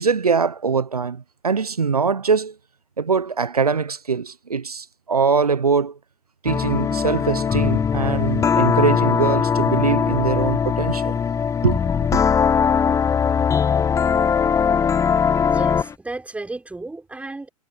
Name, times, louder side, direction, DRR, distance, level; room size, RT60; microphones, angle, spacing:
voice 1, 0.0-2.5 3.0-6.0 6.4-11.2 11.6-12.2, right 5 dB, 85° right, 1.1 m, -22 dB
sound 1, 6.5-15.9, left 7 dB, 15° left, 1.1 m, -20 dB
voice 2, 15.5-17.5, right 2 dB, 5° right, 6.6 m, -33 dB
figure-of-eight pair, 105°, 19 cm